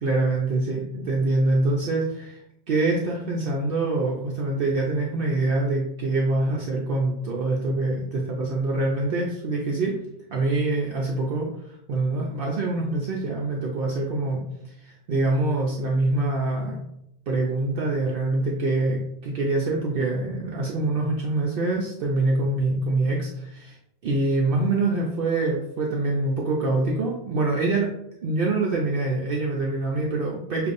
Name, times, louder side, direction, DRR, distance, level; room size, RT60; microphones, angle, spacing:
voice 1, 0.0-2.4 2.7-9.9 10.3-16.8 17.3-23.8 24.0-27.9 28.2-30.7, right 2 dB, 60° right, -2 dB, 0.8 m, -25 dB
6.7 x 2.5 x 2.5 m, 0.81 s
omnidirectional pair, 1.1 m